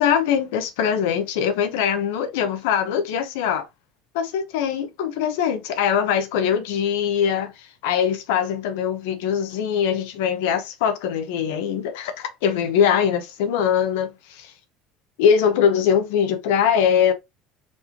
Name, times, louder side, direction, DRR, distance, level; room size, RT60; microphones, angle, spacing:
voice 1, 0.0-3.7 4.1-14.5 15.2-17.1, left 8 dB, 85° left, 0.8 m, -22 dB
4.5 x 3.0 x 2.8 m
cardioid pair, 125°, 0 cm